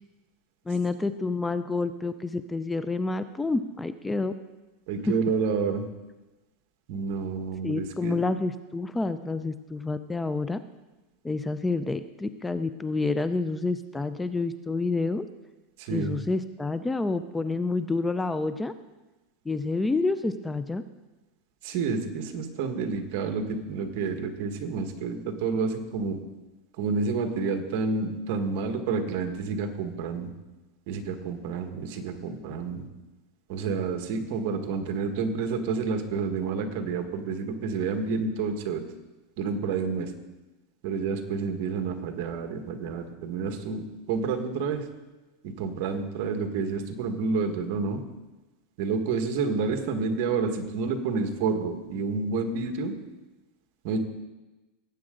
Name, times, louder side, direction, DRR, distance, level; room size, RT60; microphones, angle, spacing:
voice 1, 0.7-4.3 7.6-10.6 11.2-15.3 15.9-18.7 19.5-20.8, left 3 dB, 10° left, 11 dB, 0.4 m, -28 dB
voice 2, 4.9-5.9 6.9-8.2 15.8-16.2 21.6-26.2 26.8-30.3 30.9-32.8 33.5-38.8 39.4-40.1 40.8-44.8 45.4-48.0 48.8-52.9 53.8-54.0, right 4 dB, 55° right, 5 dB, 1.6 m, -29 dB
18.5 x 8.5 x 3.8 m, 1.1 s
supercardioid pair, 150°, 0 cm